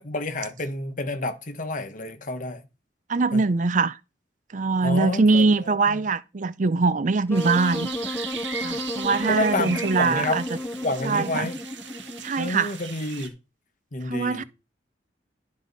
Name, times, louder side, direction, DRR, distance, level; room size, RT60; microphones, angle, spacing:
voice 1, 0.0-2.6 3.3-3.4 4.8-6.0 9.3-10.4 10.8-11.6 12.4-13.3 13.9-14.4, left 2 dB, 45° left, 1.3 m, -29 dB
voice 2, 3.1-4.0 4.5-7.9 8.6-10.4 11.0-11.5 12.2-12.7 14.1-14.4, right 4 dB, 45° right, 0.5 m, -22 dB
Wind instrument woodwind instrument, 7.3-12.4, left 1 dB, 15° left, 0.4 m, -32 dB
sound 1, 7.3-13.3, right 7 dB, 85° right, 1.7 m, -37 dB
12.0 x 5.4 x 4.1 m
head